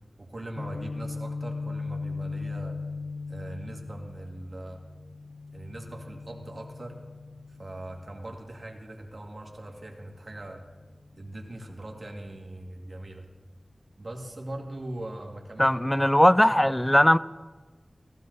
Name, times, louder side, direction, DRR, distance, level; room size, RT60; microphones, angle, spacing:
voice 1, 0.2-2.8 3.3-4.8 5.5-7.0 7.6-10.6 11.2-13.2 14.0-15.7, right 1 dB, 55° right, 2.1 m, -40 dB
Guitar, 0.6-8.4, left 3 dB, 65° left, 0.5 m, -38 dB
voice 2, 15.6-17.2, left 1 dB, 15° left, 0.4 m, -19 dB
15.5 x 15.5 x 4.0 m
cardioid pair, 40°, 0 cm